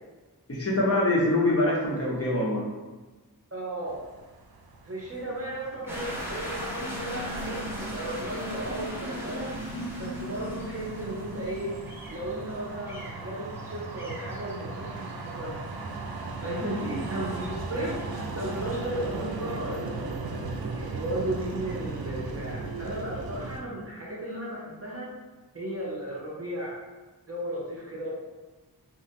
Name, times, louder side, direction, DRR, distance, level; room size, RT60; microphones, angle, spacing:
voice 1, 0.5-2.6, left 1 dB, 40° left, -5 dB, 0.8 m, -24 dB
voice 2, 3.5-4.0 4.8-9.5 10.0-11.7 12.1-15.6 16.4-20.0 20.8-25.1 25.5-26.8 27.3-28.1, right 1 dB, 40° right, -5 dB, 0.8 m, -35 dB
sound 1, 3.9-23.6, right 3 dB, 70° right, 0.5 m, -38 dB
sound 2, 5.9-18.7, equal, 5° right, 0.8 m, -39 dB
2.5 x 2.1 x 4.0 m, 1.2 s
wide cardioid pair, 60°, 39 cm